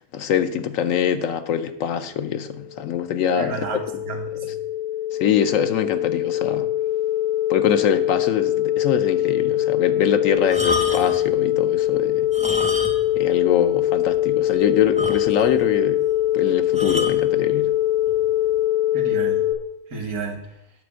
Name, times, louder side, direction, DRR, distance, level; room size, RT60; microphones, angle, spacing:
voice 1, 0.0-3.7 5.1-6.7 7.5-12.3 13.2-16.0 16.3-17.7, left 8 dB, 70° left, 1.0 m, -24 dB
sound 1, 2.5-19.5, left 13 dB, 90° left, 3.2 m, -22 dB
voice 2, 3.4-4.5 18.9-19.4 19.9-20.5, right 4 dB, 85° right, 2.0 m, -31 dB
sound 2, 10.4-11.3 12.2-13.2 13.5-13.6 14.1-14.2 14.5-14.6 15.0-15.6 16.8-17.2 18.1-18.3, left 1 dB, 5° right, 0.6 m, -28 dB
9.4 x 4.3 x 7.5 m
omnidirectional pair, 1.5 m